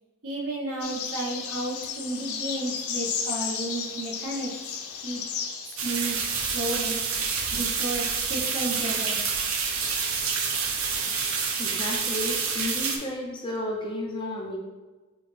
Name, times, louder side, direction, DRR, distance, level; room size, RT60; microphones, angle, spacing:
voice 1, 0.2-4.5 5.0-5.2 5.8-6.2 6.5-7.0 7.5-9.5, right 2 dB, 80° right, -3 dB, 1.1 m, -32 dB
sound 1, 0.8-5.9, left 6 dB, 80° left, 0.5 m, -33 dB
sound 2, 5.8-13.0, right 5 dB, 65° right, 0.6 m, -28 dB
voice 2, 11.6-14.6, left 1 dB, 20° left, -2 dB, 0.6 m, -32 dB
6.2 x 2.5 x 3.3 m, 1.2 s
head